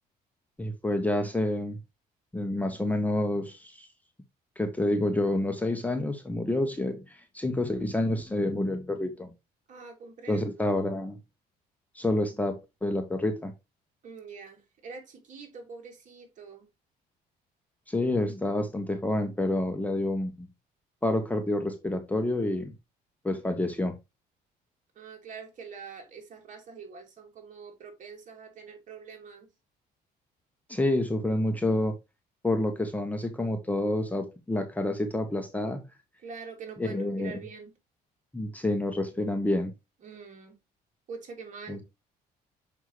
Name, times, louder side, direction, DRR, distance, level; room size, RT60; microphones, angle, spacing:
voice 1, 0.6-1.8 2.3-3.9 4.6-7.0 7.3-9.3 10.3-11.2 11.9-13.5 17.9-20.5 21.0-22.7 23.2-23.9 30.7-32.0 32.4-35.9 36.8-37.4 38.3-39.7 41.7-41.8, left 1 dB, 10° left, 1.0 m, -28 dB
voice 2, 9.7-10.5 14.0-16.7 24.9-29.5 36.2-37.7 40.0-40.5 41.1-41.8, right 5 dB, 50° right, 2.7 m, -44 dB
6.4 x 5.4 x 3.2 m
cardioid pair, 110°, 17 cm